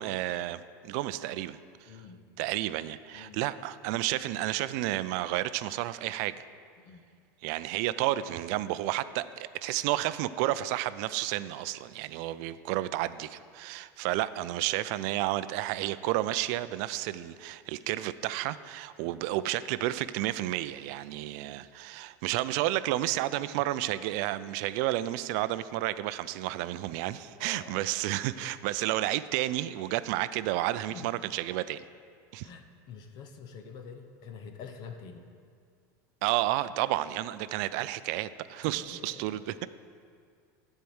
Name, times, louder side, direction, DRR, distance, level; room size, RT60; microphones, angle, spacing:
voice 1, 0.0-1.6 2.4-6.5 7.4-31.8 32.3-32.5 36.2-39.7, right 15 dB, 55° right, 15 dB, 0.4 m, -31 dB
voice 2, 1.9-2.2 3.1-3.4 6.8-7.1 19.0-19.2 27.4-27.8 30.9-31.1 32.4-35.2 38.7-39.4, left 5 dB, 40° left, 6 dB, 0.8 m, -46 dB
10.5 x 4.5 x 7.9 m, 2.2 s
supercardioid pair, 145°, 10 cm